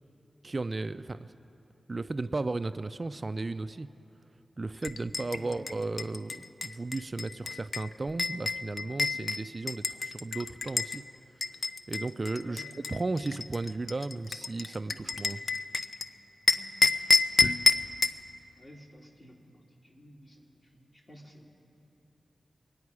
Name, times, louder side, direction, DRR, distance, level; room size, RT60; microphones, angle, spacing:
voice 1, 0.4-1.3 1.9-3.9 4.6-11.0 11.9-12.6 12.9-15.4, right 3 dB, 40° right, 12 dB, 0.3 m, -35 dB
sound 1, 4.8-11.0 11.4-16.1 16.5-18.2, left 3 dB, 65° left, 0.4 m, -29 dB
voice 2, 5.0-5.8 9.1-9.4 12.4-12.8 14.4-14.5 14.9-15.1 16.5-16.7 18.5-21.5, equal, 40° left, -2 dB, 2.6 m, -53 dB
25.0 x 9.4 x 4.8 m, 2.8 s
wide cardioid pair, 70°, 0 cm